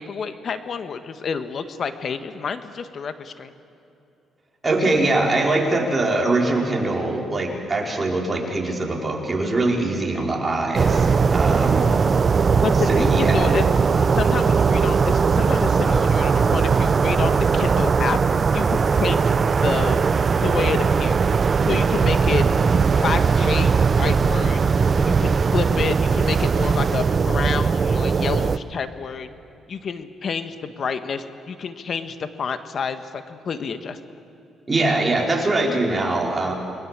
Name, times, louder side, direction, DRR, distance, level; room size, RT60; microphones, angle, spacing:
voice 1, 0.0-3.5 12.5-13.6 14.1-18.2 18.5-20.0 20.4-21.2 21.7-22.4 22.9-24.6 25.1-29.3 29.7-34.0, left 6 dB, 50° left, 10 dB, 1.5 m, -29 dB
voice 2, 4.6-11.8 12.9-13.6 34.7-36.5, right 2 dB, 25° right, 0 dB, 4.6 m, -22 dB
sound 1, 10.7-28.6, right 5 dB, 40° right, 0.7 m, -19 dB
29.5 x 21.0 x 7.5 m, 2.7 s
cardioid pair, 90°, 0 cm